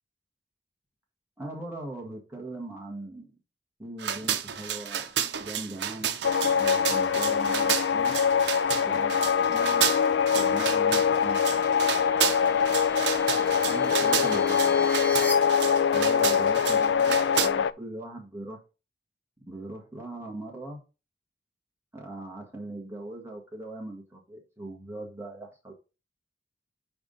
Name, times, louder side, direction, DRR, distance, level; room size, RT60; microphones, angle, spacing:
voice 1, 1.4-3.3 3.8-6.2 6.5-8.2 8.8-10.0 10.3-11.7 13.6-14.9 15.9-18.6 19.4-20.8 21.9-25.7, right 2 dB, 15° right, 1.8 m, -40 dB
sound 1, 4.0-17.5, right 9 dB, 85° right, 0.7 m, -31 dB
sound 2, 4.4-15.3, left 2 dB, 10° left, 2.4 m, -44 dB
sound 3, 6.2-17.7, left 7 dB, 85° left, 0.4 m, -24 dB
9.8 x 3.5 x 4.1 m
head